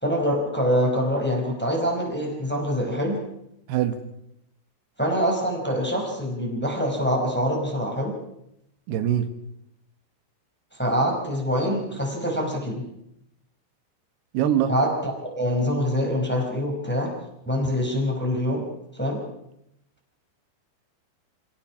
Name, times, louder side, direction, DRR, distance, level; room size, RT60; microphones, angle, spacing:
voice 1, 0.0-3.2 5.0-8.1 10.7-12.8 14.7-17.1 17.5-18.6 18.9-19.2, equal, 5° left, 0 dB, 4.3 m, -25 dB
voice 2, 8.9-9.3 14.3-14.7, right 10 dB, 90° right, 9 dB, 3.3 m, -23 dB
26.0 x 17.0 x 6.0 m, 0.81 s
omnidirectional pair, 4.5 m